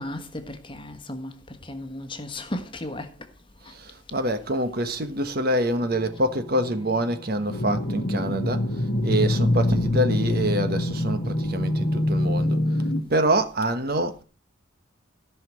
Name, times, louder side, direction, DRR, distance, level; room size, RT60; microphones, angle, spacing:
voice 1, 0.0-1.3 1.6-3.1 3.7-3.8, left 1 dB, 25° left, 1.3 m, -35 dB
voice 2, 3.7-14.2, right 1 dB, 50° right, 1.3 m, -26 dB
sound 1, 5.8-12.0, left 1 dB, 10° right, 2.4 m, -46 dB
sound 2, 7.5-13.0, left 1 dB, 70° left, 1.2 m, -24 dB
14.0 x 5.9 x 6.2 m
head